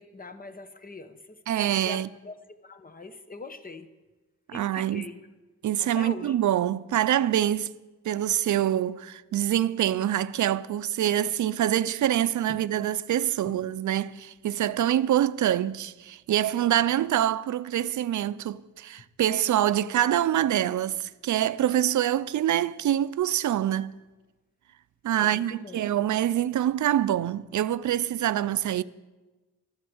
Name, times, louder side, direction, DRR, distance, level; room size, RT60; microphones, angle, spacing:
voice 1, 0.0-1.4 1.9-2.3 2.6-3.9 4.5-5.2 5.8-6.3 12.5-12.6 13.4-13.6 25.2-25.8, left 2 dB, 30° left, 1.0 m, -42 dB
voice 2, 1.5-2.1 4.5-5.1 5.6-7.7 8.0-24.0 25.0-28.8, right 11 dB, 75° right, 0.5 m, -25 dB
13.0 x 11.0 x 7.9 m
wide cardioid pair, 130°, 30 cm